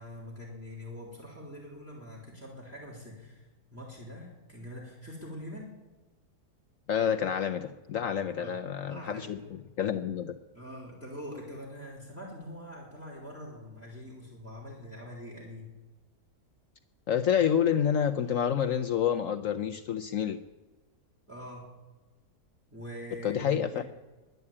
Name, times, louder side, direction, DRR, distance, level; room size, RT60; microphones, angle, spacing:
voice 1, 0.0-5.8 8.4-9.5 10.5-15.6 21.3-21.7 22.7-23.8, equal, 10° right, -2 dB, 3.3 m, -44 dB
voice 2, 6.9-10.4 17.1-20.4 23.2-23.8, left 8 dB, 60° left, 7 dB, 1.0 m, -28 dB
12.0 x 10.5 x 8.5 m, 1.2 s
omnidirectional pair, 1.7 m